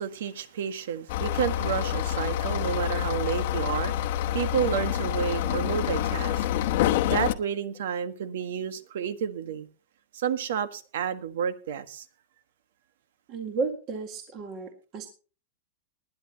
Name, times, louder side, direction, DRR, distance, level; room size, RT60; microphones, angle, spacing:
voice 1, 0.0-6.6 7.0-9.7 10.1-12.0, right 8 dB, 70° right, 1.5 m, -30 dB
sound 1, 1.1-7.3, left 11 dB, 50° left, 1.0 m, -27 dB
voice 2, 13.3-15.1, right 4 dB, 30° right, 1.9 m, -33 dB
20.5 x 10.5 x 2.9 m
supercardioid pair, 170°, 0 cm